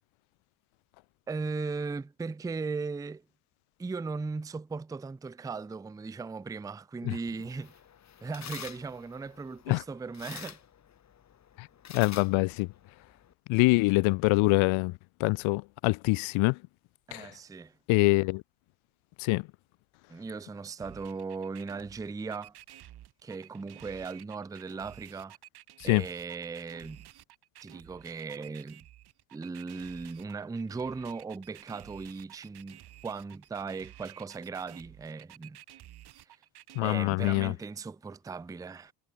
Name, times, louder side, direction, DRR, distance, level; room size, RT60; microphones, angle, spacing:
voice 1, 1.3-3.2 3.8-7.8 8.2-10.6 17.1-17.8 20.1-22.6 23.2-25.4 25.8-27.1 27.6-28.8 29.3-35.6 36.3-36.4 36.8-38.9, right 4 dB, 10° right, 0.5 m, -38 dB
sound 1, 7.3-13.3, left 9 dB, 35° left, 1.8 m, -48 dB
voice 2, 11.9-12.7 13.5-14.9 15.2-16.6 17.1-17.3 17.9-18.4 19.2-19.4 25.8-26.0 36.8-37.5, left 24 dB, 80° left, 0.6 m, -25 dB
sound 2, 20.8-36.8, right 13 dB, 55° right, 2.4 m, -52 dB
cardioid pair, 150°, 47 cm